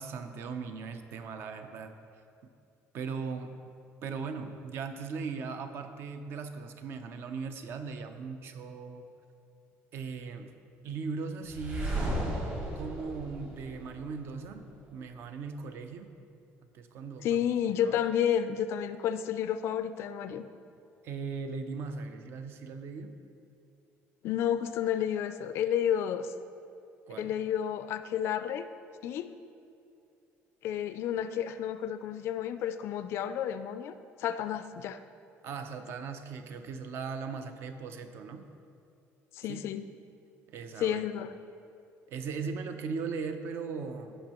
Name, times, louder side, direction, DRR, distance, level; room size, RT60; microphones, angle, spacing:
voice 1, 0.0-1.9 2.9-3.6 4.0-9.1 9.9-10.5 10.8-12.4 12.7-16.1 16.7-17.4 17.8-18.0 21.0-23.1 27.1-27.3 35.4-38.5 39.5-39.6 40.5-41.0 42.1-44.1, right 5 dB, 50° right, 8 dB, 0.5 m, -38 dB
sound 1, 11.5-14.4, right 1 dB, 30° right, 1.5 m, -34 dB
voice 2, 17.2-20.5 24.2-26.3 27.2-28.7 29.0-29.3 30.6-35.0 39.3-39.8 40.8-41.3, left 9 dB, 55° left, 11 dB, 0.3 m, -31 dB
15.0 x 5.5 x 3.0 m, 2.5 s
cardioid pair, 175°, 5 cm